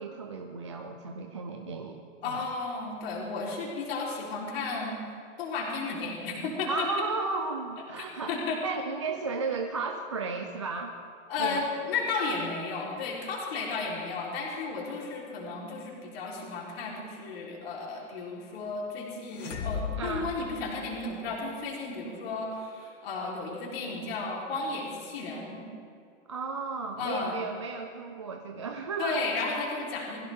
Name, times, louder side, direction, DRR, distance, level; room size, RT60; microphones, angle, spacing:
voice 1, 0.0-2.4 6.7-8.4 8.6-10.9 11.4-11.6 20.0-20.3 26.3-29.2, right 4 dB, 25° right, 3 dB, 0.4 m, -34 dB
voice 2, 2.2-7.1 8.0-8.6 11.3-25.6 27.0-27.3 29.0-30.2, left 4 dB, 50° left, -3 dB, 4.0 m, -34 dB
sound 1, 19.3-21.3, left 6 dB, 65° left, 2.8 m, -36 dB
22.0 x 16.0 x 3.6 m, 2.3 s
hypercardioid pair, 170°, 40 cm